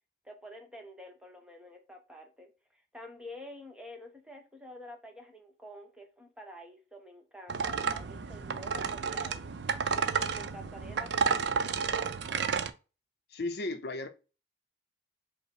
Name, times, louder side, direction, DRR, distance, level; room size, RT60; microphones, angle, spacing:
voice 1, 0.2-9.5 9.9-12.1, equal, 5° right, 0.8 m, -49 dB
sound 1, 7.5-12.7, right 6 dB, 70° right, 0.5 m, -31 dB
voice 2, 13.3-14.1, left 2 dB, 60° left, 0.6 m, -34 dB
5.3 x 2.0 x 4.7 m
head